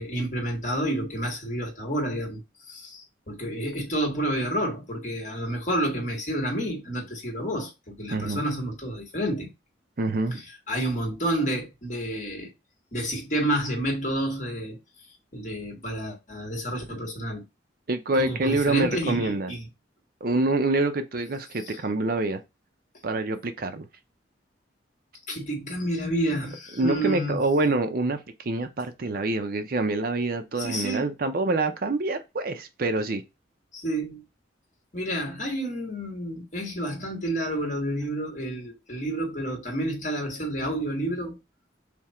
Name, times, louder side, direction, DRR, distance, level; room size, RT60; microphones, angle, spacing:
voice 1, 0.0-2.4 2.7-9.5 10.3-12.5 12.9-14.8 15.3-17.4 18.1-19.7 21.7-21.8 25.3-27.5 30.5-31.1 33.7-34.2 34.9-41.4, right 1 dB, 40° left, 1.5 m, -29 dB
voice 2, 8.1-8.4 10.0-10.4 16.9-17.0 17.9-19.5 20.2-22.4 23.0-23.9 26.8-28.2 28.4-33.2, right 2 dB, 50° right, 0.5 m, -26 dB
3.6 x 2.8 x 4.2 m
head